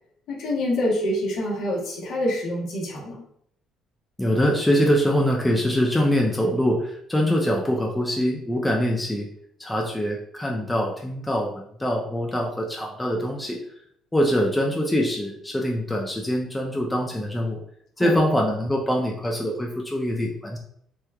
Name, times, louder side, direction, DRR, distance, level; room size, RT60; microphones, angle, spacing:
voice 1, 0.3-3.2 18.0-18.3, left 1 dB, 60° left, -3 dB, 1.2 m, -26 dB
voice 2, 4.2-9.3 9.6-13.6 14.1-17.6 18.0-20.6, equal, 10° left, 0 dB, 0.6 m, -24 dB
3.3 x 3.1 x 2.3 m, 0.68 s
figure-of-eight pair, 50°, 0 cm